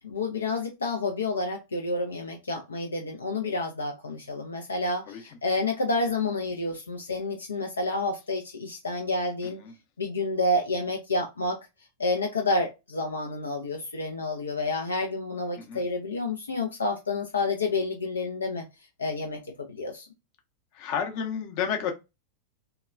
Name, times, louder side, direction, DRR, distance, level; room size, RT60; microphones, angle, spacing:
voice 1, 0.0-9.6 10.0-11.6 12.0-18.6 19.0-20.1, left 2 dB, 75° left, 0.4 m, -29 dB
voice 2, 9.4-9.7 15.6-15.8 20.7-21.9, left 7 dB, 45° left, 0.7 m, -31 dB
2.8 x 2.2 x 2.4 m
figure-of-eight pair, 90°, 0 cm